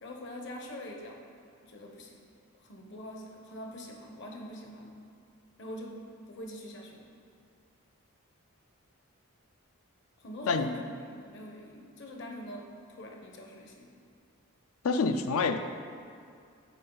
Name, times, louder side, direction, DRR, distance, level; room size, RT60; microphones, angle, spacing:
voice 1, 0.0-1.2 1.6-2.2 2.6-5.0 5.6-7.1 10.2-12.6 12.9-13.9, left 1 dB, 50° left, 1 dB, 0.9 m, -43 dB
voice 2, 14.8-15.6, left 4 dB, 70° left, 8 dB, 0.4 m, -27 dB
8.3 x 4.6 x 3.8 m, 2.3 s
head